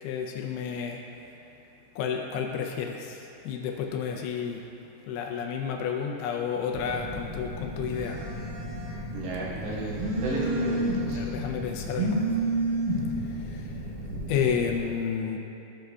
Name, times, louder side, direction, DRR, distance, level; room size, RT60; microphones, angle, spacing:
voice 1, 0.0-1.0 2.0-4.6 5.1-8.2 10.3-10.5 11.1-12.5 13.3-13.7 14.3-15.4, left 7 dB, 80° left, 1 dB, 2.5 m, -31 dB
Telephone, 6.7-14.8, right 1 dB, 70° right, 2.6 m, -31 dB
voice 2, 9.1-11.2, right 1 dB, 85° right, -6 dB, 3.7 m, -33 dB
13.5 x 6.3 x 2.3 m, 2.9 s
omnidirectional pair, 4.9 m